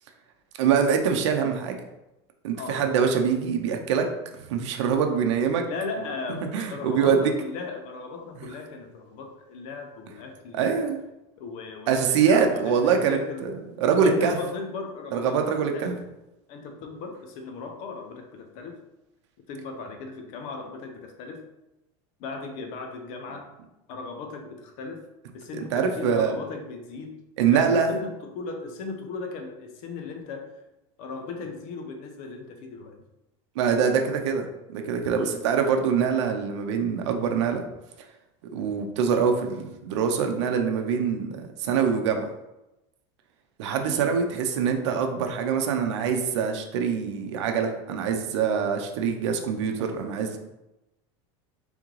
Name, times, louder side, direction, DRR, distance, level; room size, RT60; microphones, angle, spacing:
voice 1, 0.6-1.8 2.4-4.1 4.4-5.6 6.5-7.3 10.5-11.0 11.9-13.5 13.8-14.4 15.1-16.0 25.5-26.3 27.4-27.9 33.6-37.6 38.5-42.2 43.6-50.4, right 6 dB, 90° right, 5 dB, 0.6 m, -24 dB
voice 2, 2.6-3.0 5.7-10.9 11.4-13.5 14.0-16.0 16.5-18.8 19.5-21.4 22.2-23.5 23.9-27.1 27.5-30.5 31.0-33.0 35.2-35.5 43.8-44.1, left 4 dB, 55° left, 4 dB, 0.8 m, -37 dB
3.6 x 3.5 x 3.1 m, 0.94 s
supercardioid pair, 135°, 15 cm